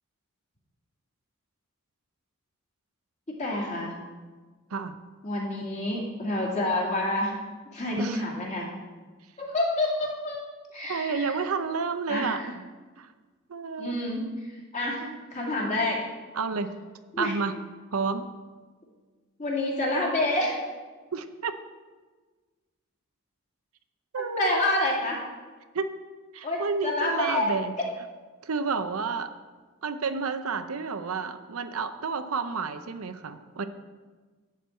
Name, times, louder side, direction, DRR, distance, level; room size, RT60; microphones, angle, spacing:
voice 1, 3.3-4.0 5.2-7.4 7.7-8.8 9.4-10.4 10.7-11.3 12.1-12.5 13.8-14.2 14.7-15.0 15.3-16.0 17.1-17.3 19.4-20.6 24.1-25.2 26.4-27.5, left 1 dB, 35° left, -3 dB, 2.4 m, -28 dB
voice 2, 10.9-12.6 13.0-13.1 13.5-13.9 15.0-15.2 16.3-16.7 17.2-17.6 17.9-18.3 21.1-21.5 24.1-24.6 25.7-25.9 26.3-27.7 28.4-29.3 29.8-33.7, right 4 dB, 80° right, 10 dB, 0.6 m, -30 dB
11.0 x 4.6 x 8.1 m, 1.4 s
head